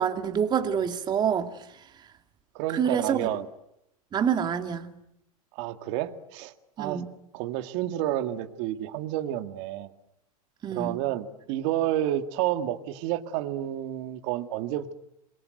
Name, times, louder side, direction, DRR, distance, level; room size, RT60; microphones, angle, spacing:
voice 1, 0.0-1.5 2.7-3.3 4.1-4.9 6.8-7.1 10.6-11.0, right 8 dB, 20° right, 2.4 m, -27 dB
voice 2, 2.5-3.5 5.5-7.0 7.3-9.9 10.7-14.9, right 12 dB, 50° right, 1.9 m, -30 dB
27.0 x 22.5 x 9.2 m
supercardioid pair, 135°, 19 cm